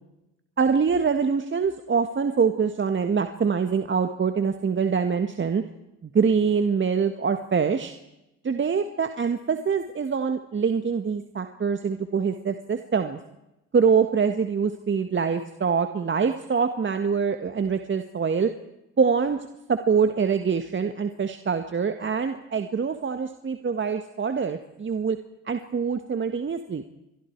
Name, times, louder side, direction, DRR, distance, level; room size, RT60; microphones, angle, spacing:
voice 1, 0.6-5.6 6.0-7.9 8.4-13.2 13.7-18.5 19.0-19.4 19.7-25.2 25.5-26.8, right 6 dB, 35° right, 7 dB, 1.8 m, -24 dB
28.5 x 23.0 x 4.8 m, 0.92 s
hypercardioid pair, 65°, 34 cm